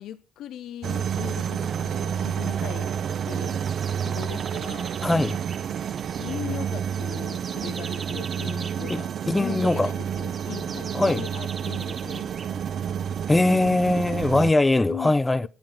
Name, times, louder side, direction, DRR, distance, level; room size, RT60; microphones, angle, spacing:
voice 1, 0.0-2.9 3.3-3.7 4.0-4.9 6.2-9.1 9.4-12.3 14.9-15.1, left 11 dB, 80° left, 0.6 m, -38 dB
sound 1, 0.8-14.5, right 8 dB, 60° right, 0.7 m, -29 dB
sound 2, 3.1-12.9, right 5 dB, 40° right, 1.8 m, -43 dB
voice 2, 5.0-5.4 8.9-9.0 9.2-9.9 10.9-11.2 13.3-15.5, left 2 dB, 15° left, 0.6 m, -21 dB
10.5 x 8.8 x 5.4 m
cardioid pair, 90°, 0 cm